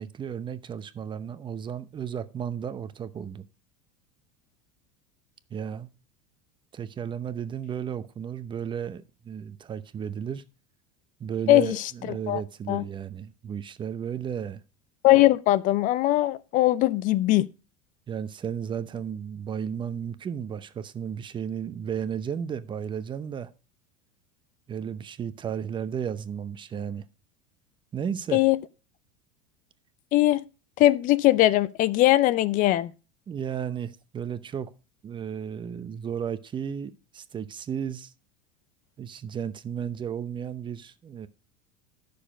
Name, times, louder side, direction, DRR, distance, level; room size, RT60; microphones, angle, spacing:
voice 1, 0.0-3.5 5.5-5.9 6.7-10.4 11.2-14.6 18.1-23.5 24.7-27.0 27.9-28.4 33.3-34.7 35.0-38.1 39.0-41.3, right 8 dB, 25° right, 0.8 m, -34 dB
voice 2, 15.0-17.5 28.3-28.6 30.1-30.4 30.8-32.9, left 15 dB, 50° left, 0.6 m, -20 dB
10.0 x 6.8 x 5.0 m
supercardioid pair, 105°, 17 cm